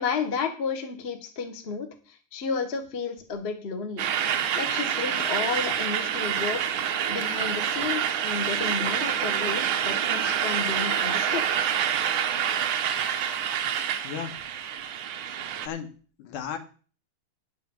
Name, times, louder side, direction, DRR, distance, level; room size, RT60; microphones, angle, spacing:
voice 1, 0.0-4.0 4.5-6.6 7.1-11.4, left 5 dB, 45° left, 6 dB, 0.7 m, -32 dB
sound 1, 4.0-15.7, right 9 dB, 85° right, 1.1 m, -27 dB
voice 2, 14.0-14.4 15.6-15.9 16.2-16.6, left 8 dB, 80° left, 6 dB, 2.8 m, -34 dB
9.7 x 6.5 x 7.1 m, 0.39 s
omnidirectional pair, 3.6 m